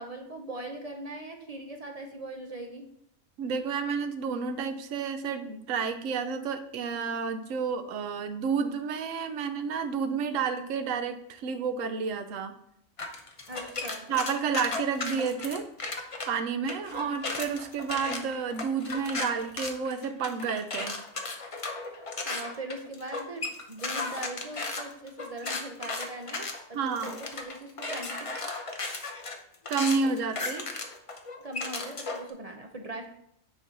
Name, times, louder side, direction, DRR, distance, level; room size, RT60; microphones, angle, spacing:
voice 1, 0.0-2.9 13.5-14.1 22.2-28.3 31.4-33.1, right 2 dB, 35° right, 3 dB, 0.6 m, -40 dB
voice 2, 3.4-12.5 14.1-15.7 16.3-21.0 26.7-27.2 29.7-30.7, right 5 dB, 70° right, 8 dB, 1.1 m, -30 dB
sound 1, 13.0-16.3 16.7-32.3, left 3 dB, 35° left, 0.6 m, -35 dB
9.3 x 4.2 x 4.0 m, 0.72 s
omnidirectional pair, 1.4 m